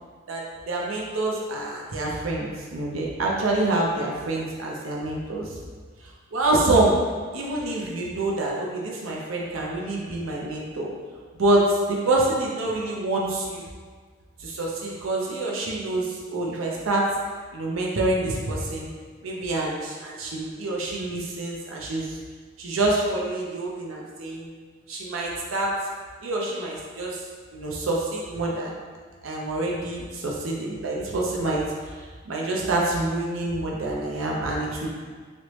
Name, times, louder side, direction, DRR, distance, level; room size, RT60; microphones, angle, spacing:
voice 1, 0.3-5.6 6.3-6.9 7.3-10.9 11.4-13.6 14.4-17.1 17.5-18.9 19.2-22.2 22.6-24.5 24.9-25.8 26.2-27.2 27.5-28.7 29.2-34.9, right 2 dB, 90° right, -3 dB, 0.6 m, -26 dB
3.1 x 3.0 x 3.0 m, 1.5 s
head